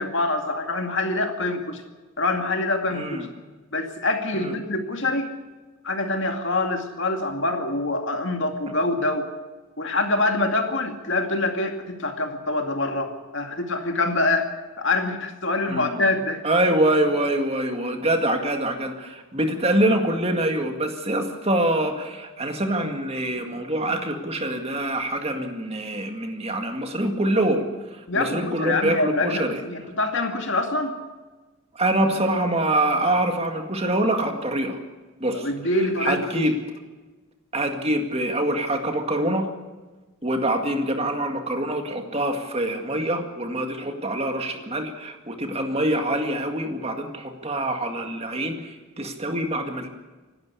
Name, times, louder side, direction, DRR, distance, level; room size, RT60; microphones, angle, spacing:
voice 1, 0.0-1.8 2.2-3.2 3.7-5.3 5.8-9.3 9.8-14.5 14.8-16.4 28.1-31.0 35.3-36.5, left 2 dB, 60° left, 4 dB, 2.4 m, -25 dB
voice 2, 2.9-3.3 4.3-4.5 15.7-16.0 16.4-29.6 31.7-34.8 35.2-35.5 36.0-36.6 37.5-39.5 40.2-49.9, right 1 dB, 30° right, 5 dB, 2.0 m, -25 dB
26.0 x 12.0 x 8.4 m, 1.2 s
head